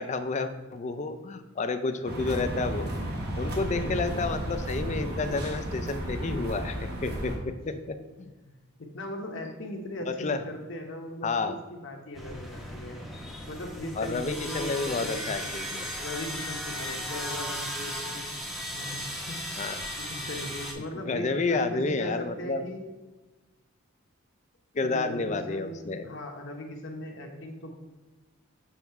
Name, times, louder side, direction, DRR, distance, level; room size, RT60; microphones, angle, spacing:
voice 1, 0.0-2.9 3.4-8.3 10.1-10.4 11.2-11.6 14.0-15.9 19.6-19.9 21.1-22.6 24.7-26.1, left 3 dB, 35° left, 9 dB, 0.4 m, -30 dB
sound 1, 2.1-7.4, right 1 dB, 50° right, 1.2 m, -33 dB
voice 2, 3.7-4.1 8.9-13.0 13.5-15.5 16.0-18.2 18.7-19.4 20.0-22.9 24.8-27.7, left 1 dB, 55° left, 3 dB, 0.9 m, -38 dB
sound 2, 12.1-20.7, equal, ahead, 0.7 m, -36 dB
7.1 x 3.5 x 4.6 m, 1.2 s
head